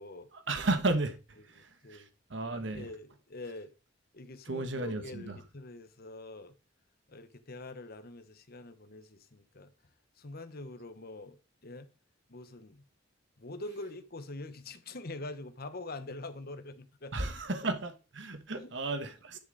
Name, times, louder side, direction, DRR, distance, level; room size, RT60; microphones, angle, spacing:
voice 1, 0.3-2.9 4.4-5.4 17.1-19.4, right 2 dB, 65° right, 1.3 m, -34 dB
voice 2, 1.6-2.1 2.7-3.7 4.1-6.5 7.1-9.7 10.2-11.4 11.6-11.9 12.3-12.8 13.4-17.1 18.6-18.7, left 2 dB, 50° left, 1.2 m, -44 dB
10.5 x 6.6 x 4.1 m
head